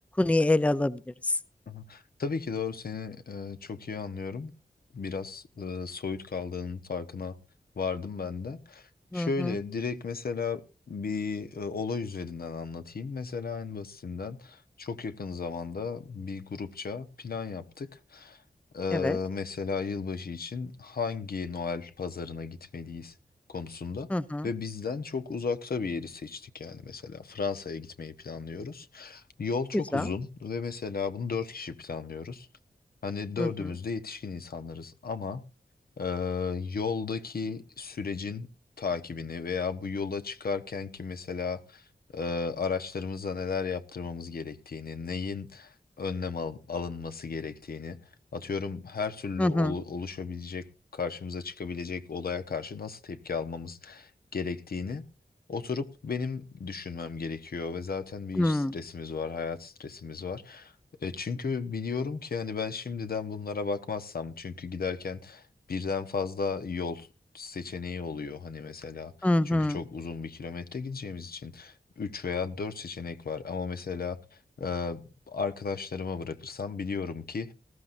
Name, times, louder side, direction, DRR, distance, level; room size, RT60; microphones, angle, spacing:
voice 1, 0.2-1.0 9.1-9.5 18.9-19.2 24.1-24.5 29.9-30.1 33.4-33.5 49.4-49.8 58.4-58.7 69.2-69.8, left 1 dB, 10° left, 0.5 m, -25 dB
voice 2, 1.7-4.5 4.9-7.4 7.8-10.6 10.9-18.4 18.7-23.1 23.5-24.1 24.4-32.5 33.0-35.4 36.0-38.5 38.8-41.8 42.1-48.0 48.3-50.7 50.9-55.0 55.5-60.7 61.0-67.1 67.3-75.0 75.3-77.5, left 5 dB, 75° left, 1.1 m, -34 dB
19.0 x 14.0 x 2.6 m
wide cardioid pair, 75°, 16 cm